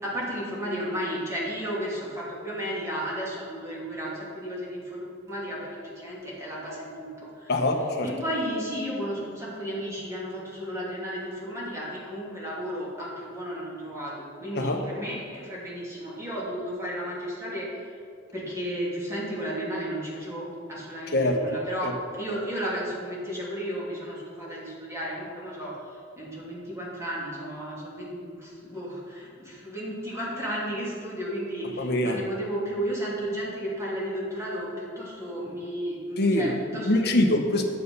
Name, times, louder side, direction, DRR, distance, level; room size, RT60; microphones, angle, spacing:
voice 1, 0.0-7.5 8.0-17.7 18.3-25.8 26.2-37.1, equal, 15° right, -6 dB, 2.8 m, -33 dB
voice 2, 7.5-8.1 14.5-14.8 21.1-21.4 21.8-21.9 31.8-32.2 36.2-37.6, left 1 dB, 55° left, 4 dB, 1.1 m, -24 dB
10.0 x 8.3 x 5.5 m, 2.4 s
head